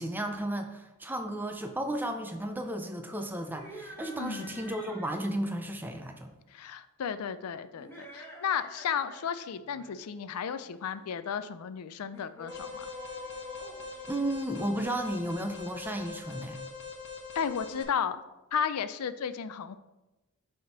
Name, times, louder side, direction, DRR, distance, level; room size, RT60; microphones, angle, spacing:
voice 1, 0.0-6.3 14.1-16.6, right 1 dB, 10° right, 5 dB, 0.5 m, -34 dB
sound 1, 3.4-5.2 7.7-9.3 9.6-9.9 12.1-15.0, left 1 dB, 10° left, 1.3 m, -46 dB
voice 2, 4.2-4.6 6.5-12.9 17.3-18.2 18.5-19.8, left 7 dB, 90° left, 13 dB, 0.4 m, -33 dB
Alarm, 12.5-17.8, left 5 dB, 55° left, 1.4 m, -43 dB
6.4 x 3.5 x 5.8 m, 1.0 s
head